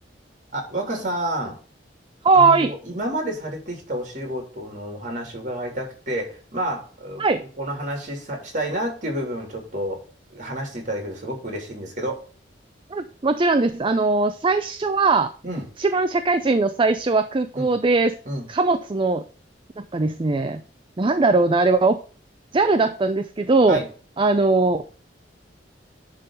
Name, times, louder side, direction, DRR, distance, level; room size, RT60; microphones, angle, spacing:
voice 1, 0.5-1.6 2.3-7.2 7.6-10.0 10.3-12.3 15.4-15.7 17.5-17.7 18.2-18.4 23.7-23.9, right 1 dB, 45° right, 2 dB, 3.4 m, -29 dB
voice 2, 2.2-2.7 7.2-7.4 12.9-15.3 15.8-18.1 18.5-19.2 19.8-20.6 21.0-22.0 22.5-23.8 24.2-24.8, right 3 dB, 30° right, 9 dB, 0.5 m, -20 dB
10.5 x 3.9 x 5.7 m, 0.39 s
head